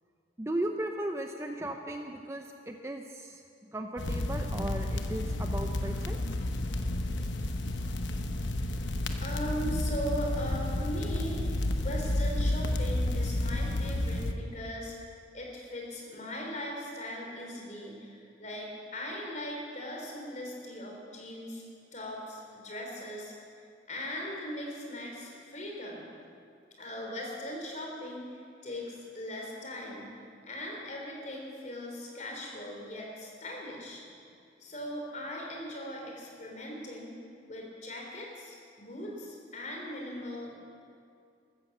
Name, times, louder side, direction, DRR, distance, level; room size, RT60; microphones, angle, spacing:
voice 1, 0.4-6.2, right 1 dB, 15° right, 4 dB, 0.6 m, -36 dB
sound 1, 4.0-14.3, left 1 dB, 80° left, 1.0 m, -31 dB
voice 2, 9.2-11.4 11.8-14.9 15.3-21.6 21.9-23.3 23.9-26.1 26.8-30.1 30.5-34.0 34.6-37.1 37.4-40.6, equal, 40° left, -1 dB, 3.7 m, -39 dB
14.5 x 13.5 x 7.4 m, 2.4 s
head